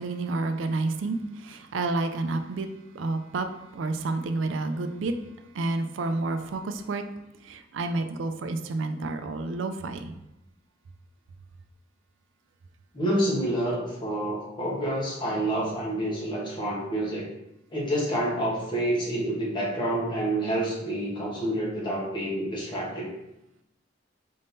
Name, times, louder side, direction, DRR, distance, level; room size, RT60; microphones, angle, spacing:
voice 1, 0.0-2.7 2.9-3.5 3.7-5.1 5.5-7.0 7.4-10.1, right 3 dB, 70° right, 8 dB, 0.4 m, -29 dB
voice 2, 12.9-17.3 17.7-23.1, right 1 dB, 25° left, -4 dB, 1.1 m, -28 dB
4.1 x 3.6 x 2.6 m, 0.89 s
head